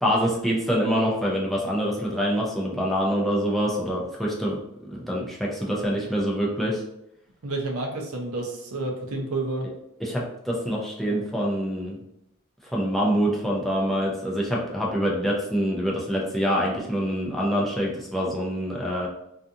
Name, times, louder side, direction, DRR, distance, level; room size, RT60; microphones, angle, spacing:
voice 1, 0.0-4.6 4.9-6.8 10.0-12.0 12.7-19.1, equal, ahead, -4 dB, 0.4 m, -25 dB
voice 2, 7.4-9.7, right 2 dB, 70° right, 1 dB, 0.6 m, -30 dB
2.4 x 2.4 x 2.6 m, 0.81 s
head